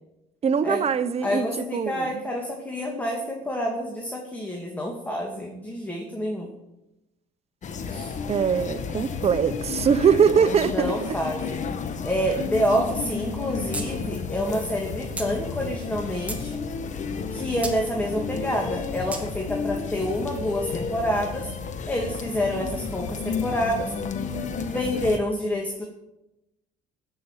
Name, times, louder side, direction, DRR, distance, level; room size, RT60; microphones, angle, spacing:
voice 1, 0.4-2.3 8.3-11.2, right 7 dB, 40° right, 0.9 m, -22 dB
voice 2, 1.2-6.5 7.8-8.1 10.7-11.6 12.0-16.6 17.3-21.5 21.9-23.9 24.7-25.8, equal, 10° left, 2.3 m, -28 dB
sound 1, 7.6-25.2, left 5 dB, 45° left, 1.3 m, -32 dB
sound 2, 13.7-13.9 14.2-14.3 15.2-15.3 15.9-16.5 17.6-17.8 19.1-19.2, right 2 dB, 10° right, 2.4 m, -32 dB
14.5 x 6.2 x 9.0 m
cardioid pair, 110°, 17 cm